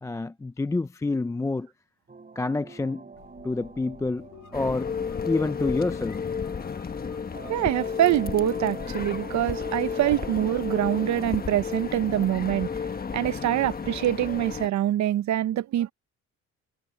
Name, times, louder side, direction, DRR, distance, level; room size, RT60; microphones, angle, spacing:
voice 1, 0.0-1.7 2.4-3.0 3.4-4.9 5.3-6.2, left 3 dB, 10° left, 0.3 m, -28 dB
sound 1, 2.1-6.9 7.3-11.8, right 4 dB, 30° right, 3.8 m, -47 dB
sound 2, 3.1-13.3, left 9 dB, 70° left, 2.3 m, -52 dB
sound 3, 4.5-14.7, left 6 dB, 30° left, 1.3 m, -32 dB
voice 2, 7.5-12.7 13.1-15.9, right 12 dB, 70° right, 0.7 m, -25 dB
cardioid pair, 90°, 30 cm